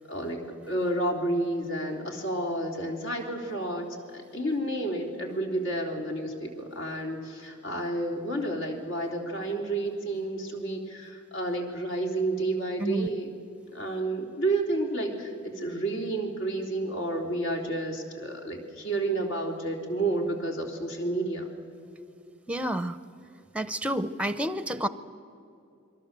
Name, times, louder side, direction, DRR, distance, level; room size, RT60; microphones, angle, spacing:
voice 1, 0.1-0.4 0.7-3.9 4.1-13.3 13.7-21.5, right 2 dB, 65° left, 1 dB, 3.5 m, -30 dB
voice 2, 22.5-23.0 23.5-24.9, right 1 dB, 5° right, 12 dB, 0.7 m, -29 dB
27.5 x 22.5 x 7.5 m, 2.6 s
head